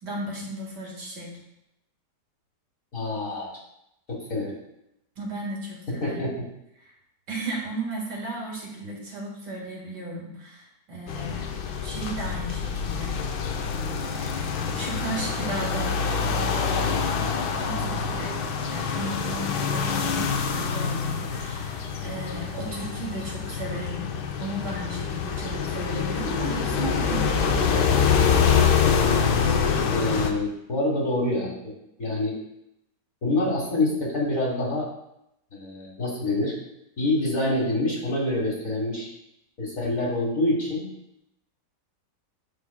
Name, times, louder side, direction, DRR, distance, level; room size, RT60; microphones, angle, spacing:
voice 1, 0.0-1.4 5.2-6.3 7.3-11.5 11.8-13.2 13.8-13.9 14.1-16.0 16.3-18.3 18.7-24.1 24.4-27.6, right 1 dB, 75° right, -2 dB, 2.3 m, -35 dB
voice 2, 2.9-3.5 4.1-4.6 5.9-6.3 29.9-31.7 32.0-32.3 33.2-34.9 35.5-36.5 37.0-39.1 39.6-40.8, left 2 dB, 50° left, -5 dB, 1.6 m, -26 dB
sound 1, 11.1-30.3, left 6 dB, 80° left, 1.3 m, -26 dB
8.4 x 6.0 x 2.2 m, 0.81 s
omnidirectional pair, 1.8 m